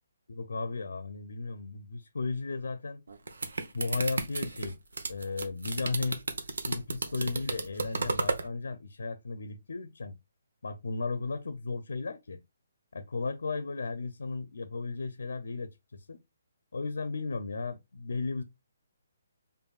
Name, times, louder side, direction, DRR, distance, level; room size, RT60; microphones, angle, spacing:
voice 1, 0.3-3.0 3.7-4.8 5.1-6.2 6.7-10.1 10.6-12.4 12.9-16.2 16.7-18.4, left 3 dB, 80° left, 0.6 m, -35 dB
sound 1, 3.1-8.5, right 3 dB, 90° right, 0.9 m, -33 dB
5.2 x 2.5 x 2.4 m
hypercardioid pair, 170°, 0 cm